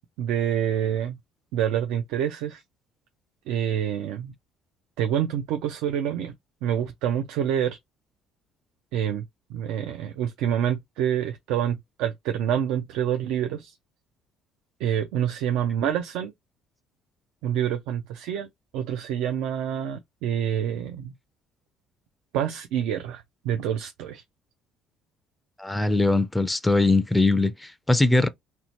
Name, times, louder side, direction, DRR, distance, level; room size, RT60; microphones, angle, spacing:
voice 1, 0.2-1.2 1.5-2.6 3.5-4.3 5.0-6.3 6.6-7.8 8.9-9.2 9.5-13.8 14.8-16.3 17.4-18.5 18.7-21.1 22.3-24.2, right 9 dB, 80° right, 0.4 m, -27 dB
voice 2, 25.6-28.3, left 2 dB, 5° left, 0.3 m, -21 dB
2.8 x 2.1 x 2.9 m
cardioid pair, 120°, 0 cm